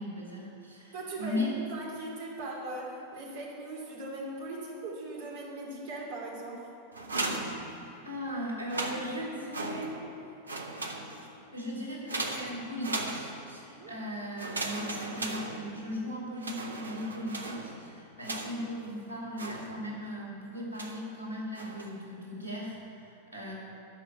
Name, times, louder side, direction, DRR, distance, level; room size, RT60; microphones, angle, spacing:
voice 1, 0.0-1.6 8.0-10.2 11.3-23.5, left 1 dB, 85° left, -3 dB, 2.6 m, -38 dB
voice 2, 0.9-6.7 13.7-13.9, right 2 dB, 55° right, -3 dB, 2.7 m, -39 dB
sound 1, 6.9-8.2 8.6-10.2 10.4-11.4 12.1-13.7 14.4-16.0 16.4-18.8 19.4-20.1 20.8-21.1 21.5-22.0, right 2 dB, 75° right, 1.0 m, -37 dB
13.0 x 5.0 x 9.0 m, 2.6 s
figure-of-eight pair, 90°, 0 cm